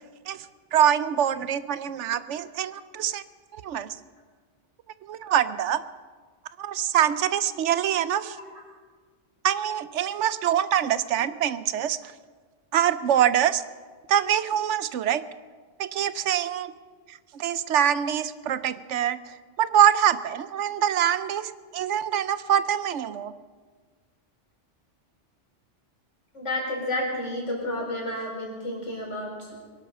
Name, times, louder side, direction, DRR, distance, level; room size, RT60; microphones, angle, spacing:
voice 1, 0.7-3.2 3.5-4.0 5.1-5.8 6.6-8.4 9.4-12.1 12.7-13.6 14.1-15.2 15.8-16.7 17.1-19.2 19.6-23.3, right 10 dB, 75° right, 14 dB, 1.0 m, -24 dB
voice 2, 26.3-29.5, left 1 dB, 80° left, -2 dB, 4.8 m, -31 dB
22.5 x 11.5 x 5.4 m, 1.5 s
omnidirectional pair, 1.3 m